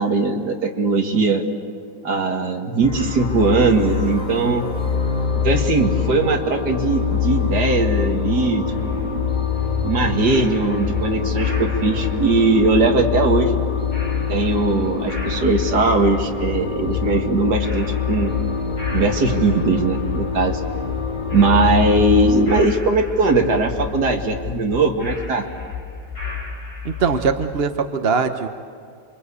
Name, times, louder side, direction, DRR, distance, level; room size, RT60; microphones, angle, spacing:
voice 1, 0.0-1.4 2.0-4.6 5.4-8.6 8.9-9.3 9.8-13.6 14.3-18.3 18.9-20.6 21.3-25.5, right 3 dB, 65° right, 3 dB, 2.5 m, -19 dB
sound 1, 2.8-22.6, left 6 dB, 25° left, 2.6 m, -24 dB
sound 2, 8.7-27.3, left 6 dB, 50° left, 5.1 m, -33 dB
voice 2, 26.8-28.5, right 5 dB, 40° right, 7 dB, 1.0 m, -21 dB
29.0 x 24.0 x 8.4 m, 2.3 s
omnidirectional pair, 1.9 m